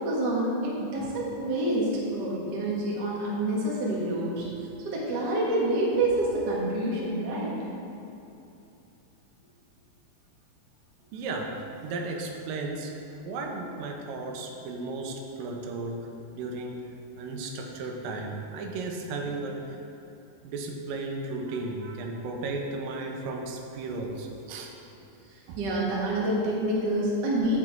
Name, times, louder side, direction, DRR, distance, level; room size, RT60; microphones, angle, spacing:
voice 1, 0.0-4.5 4.8-7.5 19.3-19.4 25.3-27.6, right 1 dB, 45° right, -5 dB, 1.4 m, -27 dB
voice 2, 11.1-12.9 13.2-16.1 16.3-16.8 17.2-19.8 20.4-24.7 25.5-25.6, right 3 dB, 85° right, 2 dB, 2.4 m, -34 dB
8.4 x 6.1 x 4.4 m, 2.8 s
omnidirectional pair, 3.9 m